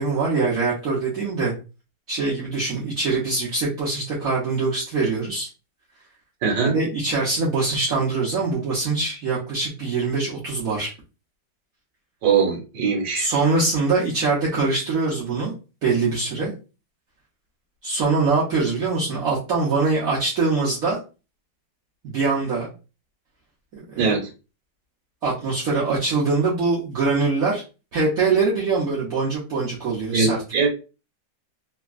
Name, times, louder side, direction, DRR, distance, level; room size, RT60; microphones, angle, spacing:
voice 1, 0.0-1.5 2.1-5.5 6.7-10.9 13.1-15.5 15.8-16.5 17.8-21.0 22.0-22.7 23.7-24.1 25.2-27.6 27.9-30.4, right 3 dB, 55° right, -6 dB, 1.3 m, -23 dB
voice 2, 6.4-6.8 12.2-13.3 24.0-24.3 30.1-30.7, right 5 dB, 70° right, 0 dB, 1.7 m, -21 dB
3.5 x 2.9 x 2.4 m, 0.31 s
omnidirectional pair, 2.0 m